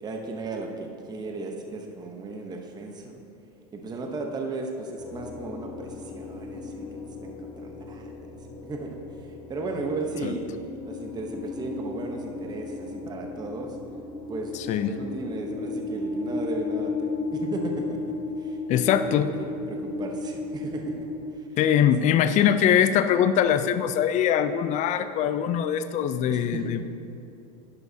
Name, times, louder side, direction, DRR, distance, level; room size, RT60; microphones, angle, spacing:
voice 1, 0.0-3.1 3.7-6.9 7.2-8.2 8.6-9.0 9.5-10.4 10.9-13.8 14.3-14.5 14.9-21.1 21.3-21.5 22.0-22.4 26.3-26.8, right 3 dB, 20° right, 2 dB, 0.9 m, -35 dB
sound 1, 5.0-21.3, left 3 dB, 70° left, 2.3 m, -35 dB
voice 2, 14.5-14.9 18.7-19.3 21.6-26.8, left 9 dB, 35° left, 11 dB, 0.5 m, -22 dB
11.0 x 10.5 x 2.8 m, 2.7 s
supercardioid pair, 120°, 20 cm